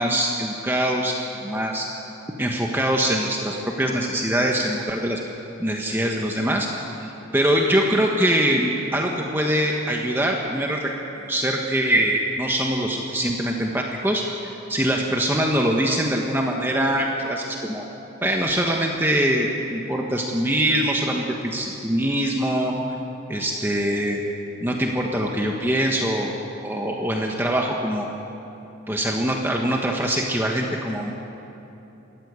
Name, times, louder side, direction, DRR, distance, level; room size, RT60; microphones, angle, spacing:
voice 1, 0.0-1.9 2.4-5.2 5.6-6.7 7.0-10.9 11.3-14.2 14.7-17.8 18.2-22.7 23.3-24.2 24.6-26.3 26.6-28.1 28.9-31.1, right 1 dB, 10° right, 0 dB, 1.4 m, -23 dB
28.5 x 14.0 x 8.3 m, 3.0 s
head